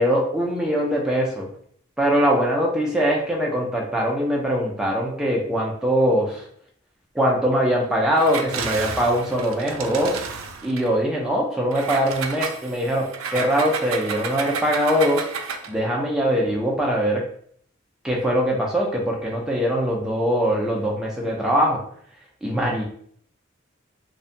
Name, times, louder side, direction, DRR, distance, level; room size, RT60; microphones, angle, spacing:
voice 1, 0.0-1.5 2.0-6.5 7.1-10.2 10.6-15.2 15.7-17.2 18.0-21.8 22.4-22.8, equal, 5° right, -3 dB, 0.3 m, -22 dB
Engine, 8.1-10.9 11.7-15.8, right 5 dB, 80° right, 0.3 m, -31 dB
2.6 x 2.1 x 2.4 m, 0.62 s
head